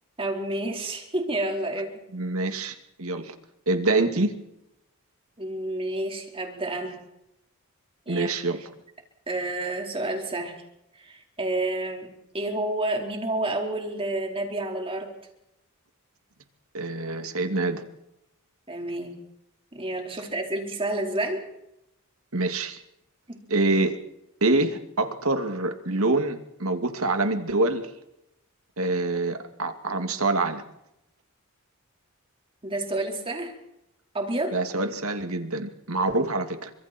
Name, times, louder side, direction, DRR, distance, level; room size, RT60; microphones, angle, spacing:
voice 1, 0.2-2.0 5.4-7.0 8.1-8.3 9.3-10.6 11.0-15.2 18.7-19.2 19.7-21.5 23.3-23.4 32.6-33.5 34.1-34.6, right 2 dB, 25° right, 2 dB, 4.5 m, -29 dB
voice 2, 2.1-3.3 3.7-4.3 8.1-8.7 16.7-17.8 22.3-22.8 23.5-24.0 24.4-27.9 28.8-30.6 34.5-36.7, right 2 dB, 70° right, 6 dB, 2.6 m, -26 dB
30.0 x 25.5 x 4.5 m, 0.84 s
head